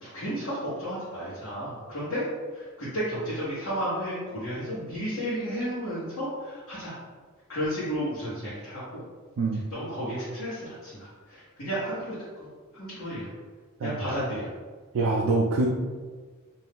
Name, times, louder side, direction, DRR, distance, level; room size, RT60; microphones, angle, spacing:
voice 1, 0.0-2.2 2.5-6.9 7.5-9.0 9.7-12.5 12.7-13.3 13.8-14.5, equal, 70° left, -11 dB, 1.1 m, -33 dB
voice 2, 14.9-15.7, right 3 dB, 65° right, -1 dB, 0.3 m, -25 dB
2.6 x 2.3 x 3.5 m, 1.5 s
head